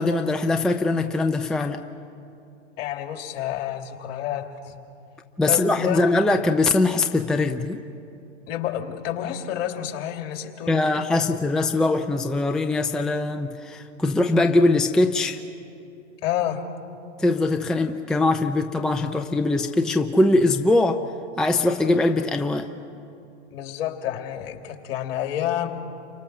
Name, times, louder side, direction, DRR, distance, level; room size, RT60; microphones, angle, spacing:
voice 1, 0.0-1.8 5.4-7.8 10.7-15.4 17.2-21.0 21.4-22.7, left 2 dB, ahead, 5 dB, 0.5 m, -22 dB
voice 2, 2.8-4.7 5.4-6.0 8.5-10.8 11.1-11.3 16.2-16.7 23.5-25.7, left 11 dB, 50° left, 4 dB, 2.9 m, -29 dB
30.0 x 24.5 x 6.6 m, 2.7 s
hypercardioid pair, 120°, 38 cm